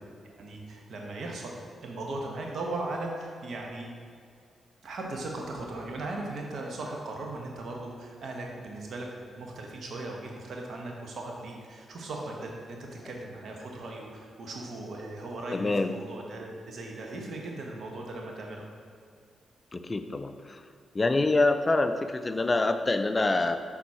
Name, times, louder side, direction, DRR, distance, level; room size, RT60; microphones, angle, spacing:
voice 1, 0.4-1.5 1.8-3.9 4.8-18.7, right 2 dB, 65° right, 0 dB, 1.0 m, -38 dB
voice 2, 15.5-16.0 19.7-20.7 20.9-23.6, left 2 dB, 35° left, 9 dB, 0.4 m, -26 dB
6.2 x 3.9 x 4.2 m, 2.3 s
supercardioid pair, 50°, 0 cm